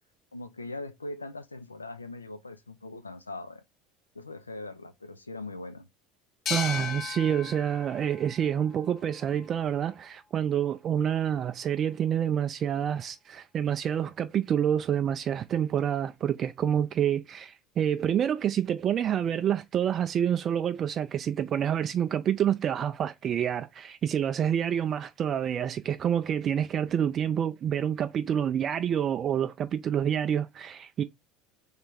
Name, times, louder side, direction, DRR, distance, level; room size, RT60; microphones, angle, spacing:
voice 1, 0.3-3.6 4.1-5.9, left 2 dB, 85° left, 0.4 m, -41 dB
sound 1, 6.5-9.8, left 7 dB, 40° left, 0.9 m, -37 dB
voice 2, 6.5-31.0, right 9 dB, 35° right, 0.4 m, -28 dB
3.4 x 3.3 x 4.4 m
figure-of-eight pair, 70°, 0 cm